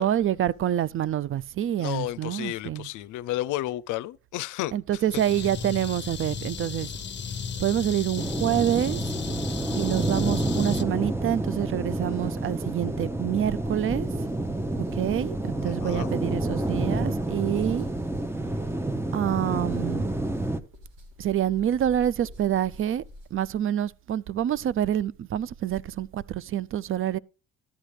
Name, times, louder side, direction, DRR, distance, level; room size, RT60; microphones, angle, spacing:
voice 1, 0.0-2.9 4.7-6.9 7.6-9.0 9.7-14.1 14.9-17.9 19.1-20.1 21.2-23.0 23.3-27.2, right 11 dB, 45° right, 0.4 m, -27 dB
voice 2, 1.8-5.2 15.5-16.1, left 15 dB, 85° left, 0.5 m, -33 dB
sound 1, 5.1-10.8, left 6 dB, 35° left, 0.9 m, -35 dB
sound 2, 8.2-20.6, right 2 dB, 10° right, 0.8 m, -29 dB
sound 3, 13.7-23.4, left 1 dB, 85° right, 3.7 m, -47 dB
12.5 x 10.0 x 3.2 m
cardioid pair, 90°, 30 cm